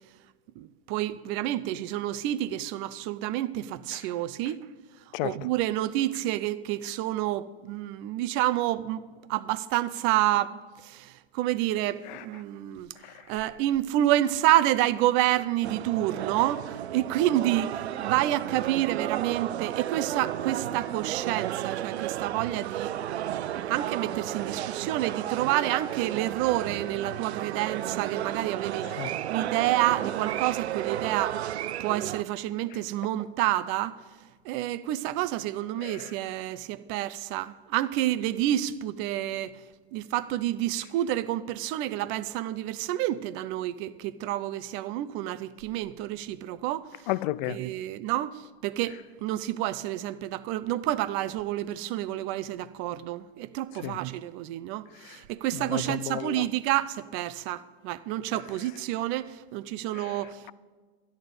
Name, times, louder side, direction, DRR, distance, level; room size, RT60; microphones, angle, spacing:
voice 1, 0.6-4.7 5.2-9.0 9.3-12.9 13.3-22.9 23.3-31.5 31.8-34.0 34.4-39.5 39.9-47.1 47.5-60.5, right 14 dB, 40° right, 0.6 m, -29 dB
sound 1, 15.6-32.2, right 12 dB, 80° right, 0.6 m, -33 dB
voice 2, 47.1-47.6 53.8-53.9 55.7-56.3, left 17 dB, 45° left, 0.5 m, -30 dB
13.0 x 11.0 x 5.2 m
hypercardioid pair, 115°, 32 cm